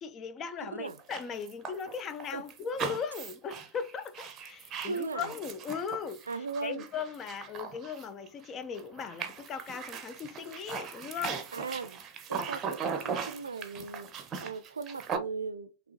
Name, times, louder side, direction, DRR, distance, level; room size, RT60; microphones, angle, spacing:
voice 1, 0.0-6.3 6.6-11.4, left 6 dB, 30° left, 0.5 m, -38 dB
voice 2, 0.7-1.0 2.3-2.4 4.8-5.3 6.3-6.8 11.5-12.0 12.3-14.1 14.4-15.9, right 4 dB, 75° right, 0.4 m, -38 dB
sound 1, 0.9-8.5 8.7-15.2, right 6 dB, 25° right, 0.7 m, -39 dB
6.0 x 2.9 x 3.0 m
figure-of-eight pair, 90°, 0 cm